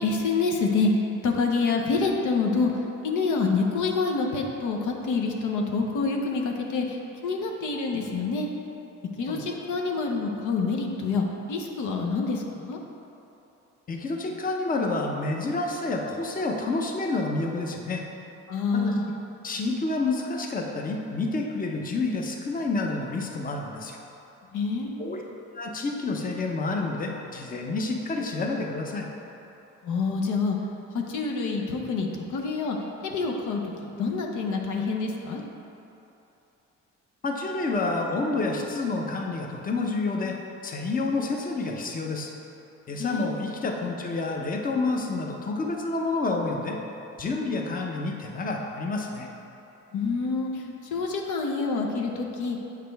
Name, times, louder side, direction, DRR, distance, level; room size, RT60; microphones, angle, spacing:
voice 1, 0.0-8.5 9.2-12.8 18.5-19.0 24.5-25.0 29.8-30.6 30.9-32.8 33.0-35.4 42.9-43.3 49.9-50.6 50.9-52.6, left 4 dB, 80° left, 1 dB, 0.8 m, -27 dB
voice 2, 13.9-18.0 18.7-18.9 19.4-24.0 25.0-25.2 25.5-29.1 37.2-40.4 40.6-42.3 42.9-46.8 47.2-49.3, left 3 dB, 30° left, 1 dB, 0.7 m, -29 dB
7.7 x 5.0 x 3.4 m, 2.9 s
cardioid pair, 90°, 30 cm